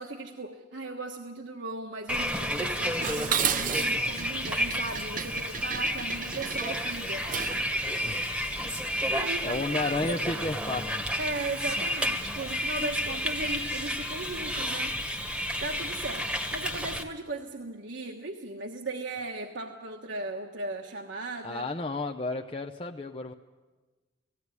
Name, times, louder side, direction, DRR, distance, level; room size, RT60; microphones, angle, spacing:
voice 1, 0.0-7.3 9.1-10.2 11.2-14.9 15.6-21.6, right 2 dB, 70° right, 1 dB, 1.3 m, -37 dB
Bus, 2.1-17.0, equal, 5° right, 1.3 m, -31 dB
Dishes pots and pans, 3.0-7.7, right 8 dB, 45° right, 0.6 m, -33 dB
voice 2, 8.0-8.4 9.0-9.2 9.4-11.1 21.4-23.3, left 2 dB, 30° left, 4 dB, 0.6 m, -32 dB
18.5 x 16.0 x 9.6 m, 1.3 s
head